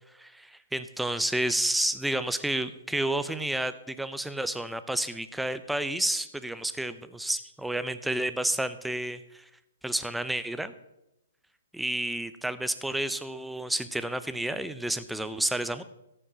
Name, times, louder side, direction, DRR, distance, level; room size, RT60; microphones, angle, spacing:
voice 1, 0.1-9.5 9.8-10.7 11.7-15.8, right 1 dB, ahead, 12 dB, 0.5 m, -30 dB
13.5 x 5.4 x 6.0 m, 0.88 s
hypercardioid pair, 140°, 0 cm